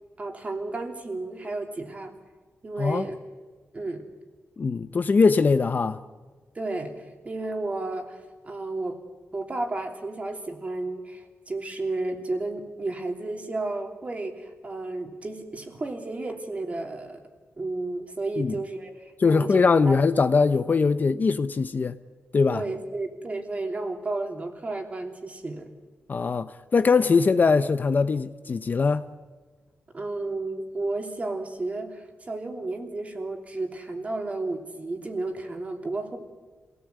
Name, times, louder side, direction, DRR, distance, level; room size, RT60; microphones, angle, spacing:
voice 1, 0.2-2.1 2.6-3.2 3.7-4.0 6.5-9.0 9.3-17.2 17.6-19.5 19.8-20.0 22.5-25.7 29.9-36.2, right 2 dB, 30° right, 3.1 m, -32 dB
voice 2, 4.6-6.0 18.4-18.6 19.2-22.0 22.3-22.6 26.1-29.1, left 4 dB, 45° left, 0.8 m, -21 dB
26.5 x 18.0 x 8.2 m
wide cardioid pair, 120°, 4 cm